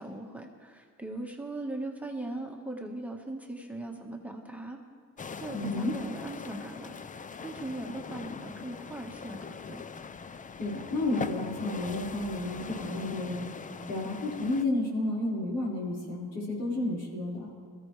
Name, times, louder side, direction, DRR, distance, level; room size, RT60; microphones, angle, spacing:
voice 1, 0.0-4.8 5.4-7.1 7.4-9.8, right 2 dB, 5° right, 0 dB, 1.5 m, -39 dB
sound 1, 5.2-14.7, left 5 dB, 25° left, 0.5 m, -41 dB
voice 2, 5.5-5.9 10.6-13.5 13.9-17.5, left 2 dB, 80° left, -5 dB, 5.1 m, -31 dB
21.5 x 14.5 x 3.4 m, 2.1 s
cardioid pair, 90°, 30 cm